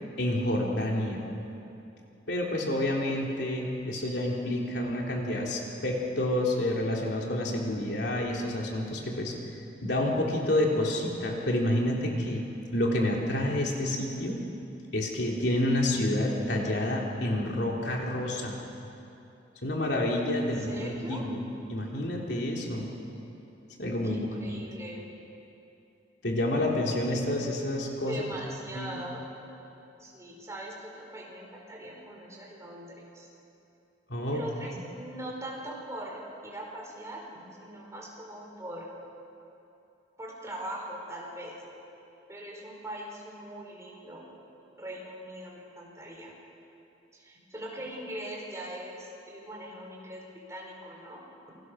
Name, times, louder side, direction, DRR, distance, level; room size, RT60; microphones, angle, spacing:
voice 1, 0.2-1.2 2.3-9.3 9.8-12.4 12.7-14.4 14.9-18.5 19.6-21.4 21.7-22.9 23.8-24.6 26.2-28.2 28.7-28.9 34.1-34.4, left 1 dB, 70° left, -1 dB, 3.7 m, -29 dB
voice 2, 20.3-21.2 24.1-25.0 28.1-29.4 30.0-33.3 34.3-37.2 37.6-38.9 40.2-41.6 42.3-44.2 44.7-46.3 47.1-51.2, right 1 dB, 15° right, -2 dB, 5.1 m, -41 dB
28.0 x 23.5 x 6.6 m, 2.8 s
head